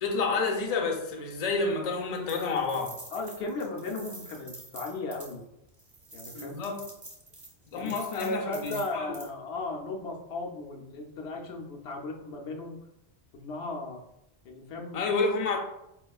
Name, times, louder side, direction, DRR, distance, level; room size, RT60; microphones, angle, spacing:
voice 1, 0.0-3.0 6.3-6.8 7.7-9.1 14.9-15.6, left 4 dB, 45° left, 0 dB, 0.5 m, -29 dB
sound 1, 1.9-5.4 5.8-9.3, right 2 dB, 25° right, 0.9 m, -47 dB
voice 2, 3.1-5.4 6.1-6.6 7.8-12.8 13.3-14.0 14.4-15.0, left 2 dB, 75° left, 0 dB, 0.8 m, -36 dB
4.8 x 2.3 x 2.3 m, 0.84 s
omnidirectional pair, 1.1 m